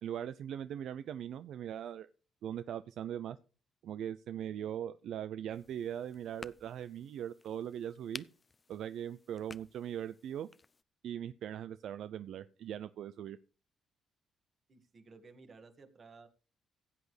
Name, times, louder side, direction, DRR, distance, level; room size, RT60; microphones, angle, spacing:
voice 1, 0.0-2.1 2.4-3.4 3.8-8.2 8.7-10.5 11.0-13.4, right 10 dB, 75° right, 13 dB, 0.4 m, -40 dB
sound 1, 5.5-10.8, left 4 dB, 30° left, 0.5 m, -53 dB
voice 2, 14.7-16.3, right 4 dB, 45° right, 7 dB, 1.8 m, -56 dB
16.0 x 8.2 x 3.3 m, 0.35 s
cardioid pair, 90°, 0 cm